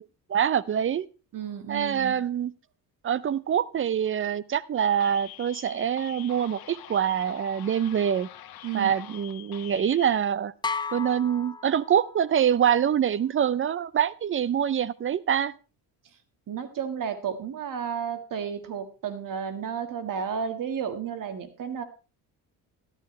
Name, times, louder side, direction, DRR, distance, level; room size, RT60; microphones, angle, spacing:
voice 1, 0.3-1.1 1.7-2.5 3.0-8.3 8.7-10.5 10.9-15.5, right 9 dB, 35° right, 19 dB, 0.6 m, -25 dB
voice 2, 1.3-2.2 8.6-8.9 16.5-21.8, right 7 dB, 55° right, 8 dB, 1.7 m, -32 dB
sound 1, 5.0-10.2, left 12 dB, 65° left, 1.2 m, -45 dB
sound 2, 10.6-12.4, left 4 dB, 10° left, 0.4 m, -34 dB
13.0 x 11.5 x 3.2 m, 0.34 s
cardioid pair, 100°, 39 cm